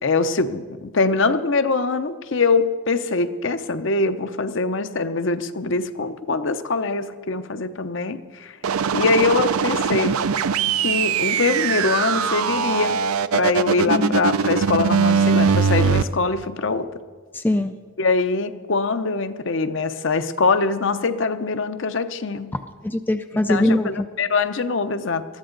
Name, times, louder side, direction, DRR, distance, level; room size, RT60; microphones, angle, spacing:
voice 1, 0.0-8.6 8.9-10.2 10.8-13.0 13.3-16.9 18.0-22.6 23.5-25.3, left 3 dB, 55° left, 11 dB, 0.7 m, -23 dB
sound 1, 8.6-16.0, right 6 dB, 80° right, 0.5 m, -21 dB
voice 2, 17.3-17.7 22.5-24.1, left 1 dB, 10° left, 9 dB, 0.3 m, -22 dB
20.5 x 14.0 x 3.9 m, 1.5 s
head